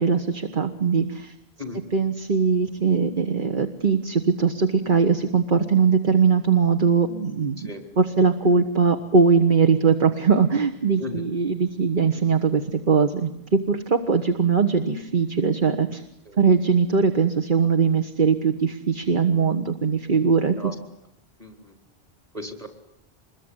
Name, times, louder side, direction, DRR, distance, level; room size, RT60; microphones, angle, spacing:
voice 1, 0.0-1.3 1.9-7.7 8.0-16.0 16.4-20.5, right 5 dB, 55° right, 7 dB, 1.5 m, -21 dB
voice 2, 21.4-21.8 22.3-22.7, left 1 dB, 35° right, 6 dB, 4.2 m, -36 dB
26.5 x 22.0 x 9.9 m, 0.78 s
omnidirectional pair, 1.0 m